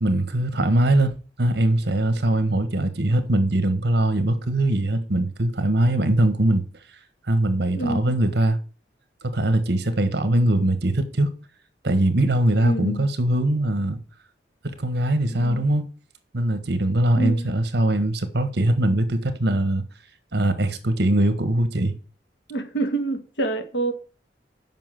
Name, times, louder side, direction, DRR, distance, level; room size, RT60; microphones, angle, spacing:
voice 1, 0.0-1.1 1.4-6.6 7.3-8.6 9.2-11.3 11.8-14.0 14.6-15.8 16.3-19.8 20.3-22.0, right 1 dB, 65° right, 1.4 m, -21 dB
voice 2, 7.7-8.2 12.6-13.1 15.3-15.6 17.2-17.5 22.5-23.9, right 2 dB, 80° left, 1.8 m, -27 dB
7.5 x 5.7 x 7.6 m
head